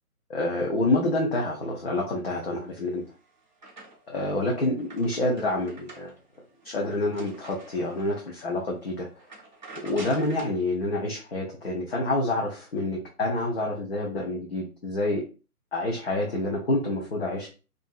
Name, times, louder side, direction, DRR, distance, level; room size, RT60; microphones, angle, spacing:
voice 1, 0.3-3.0 4.1-6.1 6.6-9.1 9.8-15.2 15.7-17.5, left 2 dB, 40° left, -2 dB, 0.6 m, -27 dB
sound 1, 2.7-4.2 4.6-8.2 8.7-8.8 9.2-10.6, right 2 dB, 30° right, 0.5 m, -47 dB
2.7 x 2.5 x 2.2 m, 0.34 s
hypercardioid pair, 160°, 45 cm